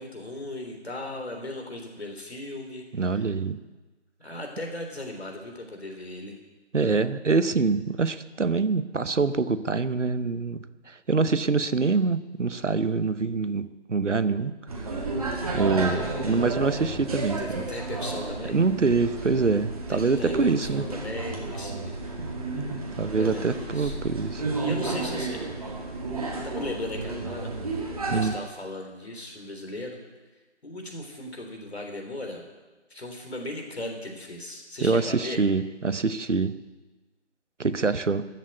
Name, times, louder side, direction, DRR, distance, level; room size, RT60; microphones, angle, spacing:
voice 1, 0.0-2.8 4.2-6.3 17.2-18.6 19.9-22.0 23.1-24.0 24.6-25.4 26.4-27.5 28.1-30.0 30.6-32.4 32.9-35.4, left 1 dB, 60° left, 3 dB, 3.6 m, -37 dB
voice 2, 2.9-3.6 6.7-14.9 15.5-17.6 18.5-20.9 23.0-24.4 28.1-28.4 34.8-36.6 37.6-38.3, right 4 dB, 85° right, 14 dB, 1.0 m, -25 dB
sound 1, 14.7-28.3, right 3 dB, 30° right, 2.1 m, -32 dB
13.5 x 7.6 x 9.3 m, 1.2 s
figure-of-eight pair, 160°, 35 cm